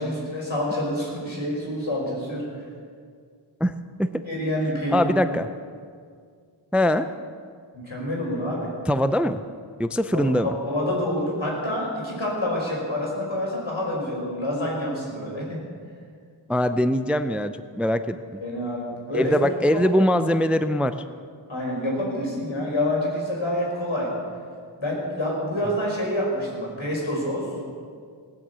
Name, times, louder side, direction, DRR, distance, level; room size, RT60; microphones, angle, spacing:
voice 1, 0.0-2.6 4.2-5.1 7.7-8.7 10.1-15.6 18.4-19.3 19.7-19.8 21.5-24.1 24.8-27.5, left 1 dB, 75° left, -3 dB, 5.5 m, -27 dB
voice 2, 4.9-5.5 6.7-7.1 8.9-9.4 9.8-10.5 16.5-18.4 19.1-20.9, equal, 5° right, 11 dB, 0.4 m, -22 dB
19.5 x 7.8 x 8.2 m, 2.1 s
wide cardioid pair, 80°, 47 cm